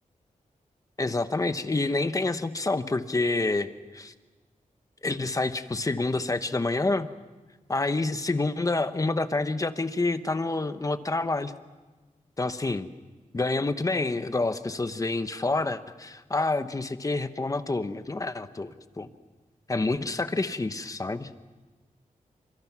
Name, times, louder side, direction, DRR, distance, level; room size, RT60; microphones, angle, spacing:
voice 1, 1.0-3.7 3.9-4.1 5.0-7.1 7.7-11.5 12.4-12.9 13.3-19.1 19.7-21.3, left 2 dB, 25° left, 10 dB, 1.0 m, -28 dB
28.5 x 26.5 x 6.1 m, 1.3 s
wide cardioid pair, 155°, 14 cm